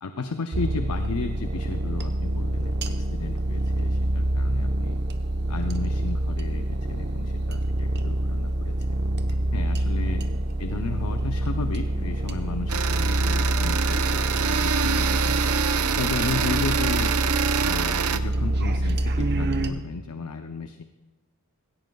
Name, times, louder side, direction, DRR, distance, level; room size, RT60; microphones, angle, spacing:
voice 1, 0.0-5.0 5.5-9.0 9.5-10.2 10.6-15.4 16.0-17.1 17.6-20.8, left 4 dB, 85° left, 7 dB, 0.6 m, -34 dB
sound 1, 0.5-19.7, right 1 dB, 45° right, 0.8 m, -26 dB
sound 2, 12.7-18.2, right 6 dB, 80° right, 0.6 m, -26 dB
17.0 x 16.5 x 2.3 m, 1.2 s
head